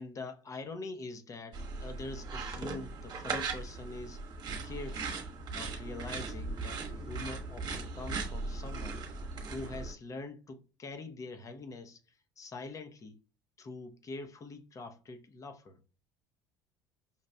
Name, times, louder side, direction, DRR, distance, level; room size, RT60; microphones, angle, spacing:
voice 1, 0.0-4.2 4.6-5.3 5.5-9.1 9.5-12.0 12.4-13.2 13.6-15.8, left 3 dB, 35° left, 0.8 m, -44 dB
sound 1, 1.5-9.9, right 4 dB, 45° right, 1.1 m, -38 dB
5.6 x 2.4 x 2.2 m
hypercardioid pair, 80°, 10 cm